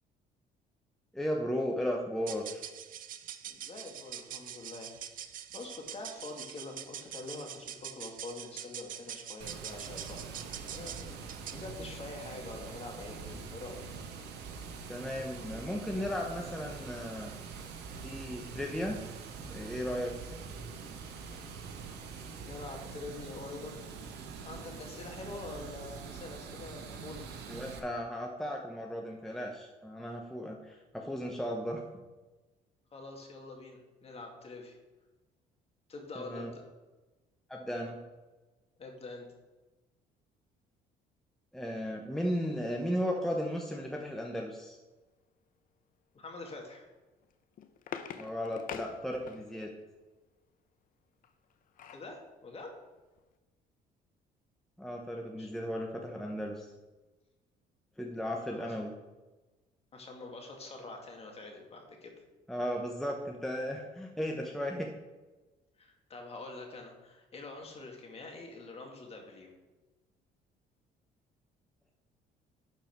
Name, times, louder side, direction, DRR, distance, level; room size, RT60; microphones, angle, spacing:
voice 1, 1.1-2.6 14.9-17.3 18.0-19.0 19.5-20.1 27.5-31.8 36.2-36.5 37.5-38.0 41.5-44.8 48.1-49.7 54.8-56.7 58.0-58.9 62.5-64.9, equal, ahead, 0 dB, 0.9 m, -35 dB
sound 1, 2.2-11.7, right 10 dB, 55° right, 0.6 m, -44 dB
voice 2, 3.5-4.9 5.5-10.2 10.6-11.1 11.5-13.8 22.3-23.8 24.4-27.2 32.9-34.8 35.9-36.6 38.8-39.3 46.1-46.9 51.9-52.8 55.4-55.5 58.1-58.9 59.9-62.1 65.8-69.5, left 3 dB, 35° left, 2 dB, 2.0 m, -45 dB
Water, 9.4-27.8, right 5 dB, 80° right, 1.1 m, -44 dB
sound 2, 47.2-49.7 51.2-52.1 52.6-52.7 53.0-53.2, left 8 dB, 55° left, 0.7 m, -44 dB
11.5 x 4.6 x 4.5 m, 1.2 s
cardioid pair, 110°, 17 cm